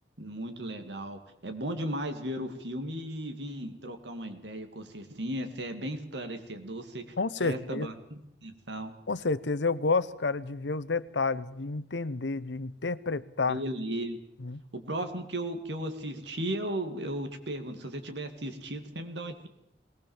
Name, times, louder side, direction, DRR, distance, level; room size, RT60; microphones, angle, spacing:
voice 1, 0.2-8.9 13.5-14.2 14.7-19.5, right 1 dB, 80° right, 7 dB, 2.5 m, -36 dB
voice 2, 7.2-7.9 9.1-13.6 14.4-14.6, left 3 dB, 90° left, 16 dB, 0.9 m, -30 dB
20.5 x 18.5 x 7.3 m, 0.82 s
head